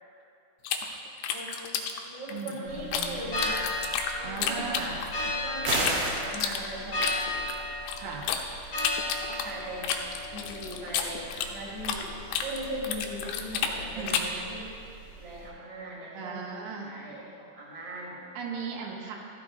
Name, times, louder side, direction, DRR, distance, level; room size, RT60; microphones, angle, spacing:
sound 1, 0.6-3.1 3.4-5.3 5.6-8.4 8.8-12.1 12.3-14.4, left 8 dB, 80° left, 2.4 m, -31 dB
voice 1, 1.3-3.8 4.2-7.1 9.3-9.9 10.3-12.1 12.4-14.7 15.1-16.4 16.7-18.2, right 1 dB, 15° right, -6 dB, 1.1 m, -39 dB
voice 2, 2.3-3.2 4.2-5.0 8.0-8.3 13.9-14.3 16.2-16.9 18.4-19.2, right 5 dB, 85° right, -1 dB, 3.5 m, -37 dB
sound 2, 2.7-15.5, left 1 dB, 45° left, 1.5 m, -37 dB
sound 3, 5.6-6.2, right 2 dB, 55° right, 2.6 m, -27 dB
14.5 x 11.0 x 2.6 m, 2.5 s
omnidirectional pair, 5.4 m